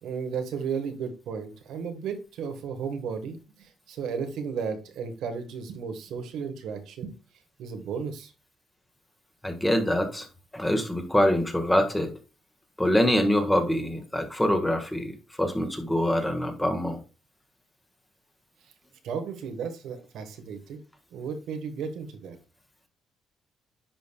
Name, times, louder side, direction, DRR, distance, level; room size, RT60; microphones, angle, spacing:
voice 1, 0.0-7.1 7.6-8.3 19.0-20.8 21.1-22.4, right 6 dB, 80° right, 6 dB, 1.3 m, -34 dB
voice 2, 9.4-10.3 10.5-12.1 12.8-17.0, left 1 dB, 10° left, 6 dB, 1.5 m, -25 dB
10.0 x 5.2 x 2.2 m, 0.32 s
cardioid pair, 110°, 0 cm